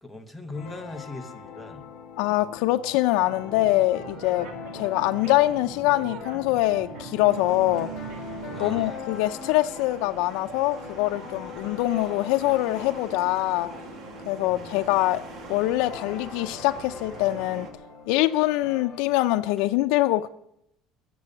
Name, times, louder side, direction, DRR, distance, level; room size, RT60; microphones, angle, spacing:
voice 1, 0.0-1.9 4.7-4.8 8.5-9.0 11.5-11.6 14.4-14.8, left 2 dB, ahead, 1.1 m, -40 dB
sound 1, 0.5-19.0, left 6 dB, 45° left, 2.4 m, -43 dB
voice 2, 2.2-7.9 8.6-13.7 14.3-15.2 15.5-17.7 18.1-20.3, left 16 dB, 85° left, 0.5 m, -24 dB
sound 2, 3.2-8.9, right 6 dB, 70° right, 2.1 m, -40 dB
sound 3, 7.3-17.7, right 4 dB, 45° right, 1.9 m, -43 dB
15.5 x 7.0 x 9.8 m
cardioid pair, 165°, 0 cm